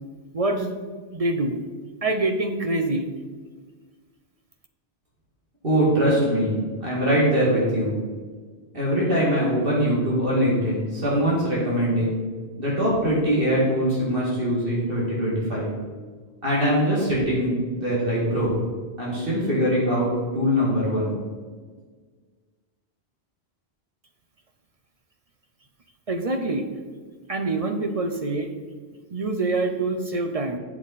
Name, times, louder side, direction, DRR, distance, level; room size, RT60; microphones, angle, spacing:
voice 1, 0.3-0.8 1.1-1.6 2.0-3.1 26.1-26.6 27.3-28.5 29.1-30.6, right 2 dB, 40° right, 5 dB, 0.7 m, -25 dB
voice 2, 5.6-6.5 6.8-7.9 8.7-12.2 12.6-15.7 16.4-18.5 19.0-21.1, equal, 55° right, -6 dB, 2.3 m, -22 dB
8.3 x 7.0 x 4.1 m, 1.5 s
omnidirectional pair, 1.1 m